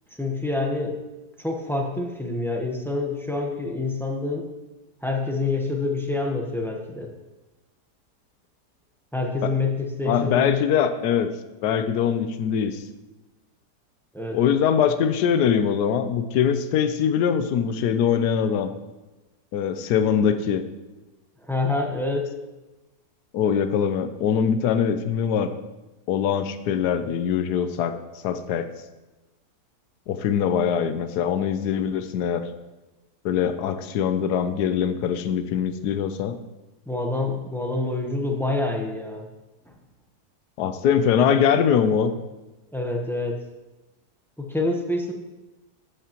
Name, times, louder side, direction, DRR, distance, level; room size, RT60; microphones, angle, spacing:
voice 1, 0.2-1.0 1.4-4.5 5.0-7.1 9.1-10.6 14.1-14.4 21.5-22.3 36.9-39.2 42.7-43.4 44.4-45.1, left 2 dB, ahead, 1 dB, 0.7 m, -27 dB
voice 2, 10.1-11.3 11.6-12.8 14.3-18.7 19.5-20.6 23.3-25.5 26.1-28.0 28.2-28.7 30.1-32.5 33.2-36.4 40.6-42.1, left 8 dB, 80° left, 10 dB, 1.2 m, -22 dB
13.0 x 8.3 x 3.0 m, 1.1 s
omnidirectional pair, 1.7 m